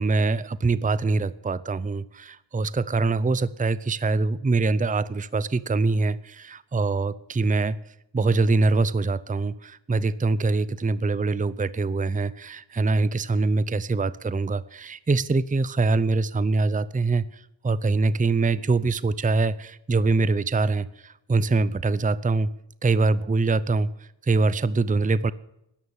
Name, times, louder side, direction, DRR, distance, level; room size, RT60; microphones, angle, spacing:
voice 1, 0.0-7.8 8.1-22.5 22.8-23.9 24.2-25.3, right 3 dB, 20° right, 18 dB, 0.6 m, -24 dB
13.0 x 11.0 x 7.3 m, 0.80 s
cardioid pair, 45°, 45 cm